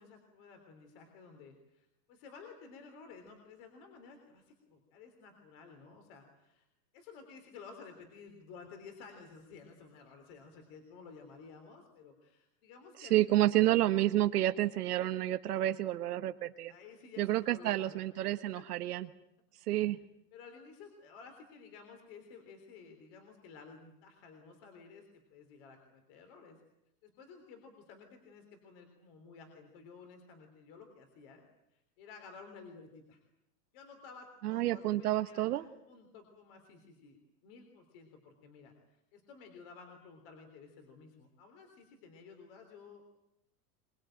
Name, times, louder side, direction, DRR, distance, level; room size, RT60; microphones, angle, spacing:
voice 1, 0.0-6.7 6.9-13.8 15.5-15.7 16.7-18.7 19.8-20.0 20.3-26.6 27.0-31.4 31.7-33.2 33.7-37.2 37.4-43.2, left 5 dB, 35° left, 5 dB, 3.5 m, -54 dB
voice 2, 13.0-16.7 17.2-19.1 19.7-20.0 34.4-35.6, right 14 dB, 70° right, 8 dB, 1.3 m, -29 dB
23.5 x 23.5 x 9.1 m, 0.82 s
supercardioid pair, 175°, 48 cm